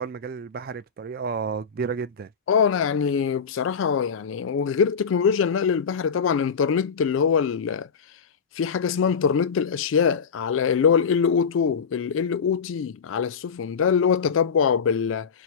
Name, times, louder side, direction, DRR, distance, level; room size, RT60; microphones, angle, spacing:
voice 1, 0.0-2.3, right 5 dB, 45° right, 0.4 m, -31 dB
voice 2, 2.5-7.9 8.6-15.3, left 6 dB, 70° left, 0.3 m, -23 dB
4.5 x 2.0 x 2.6 m
head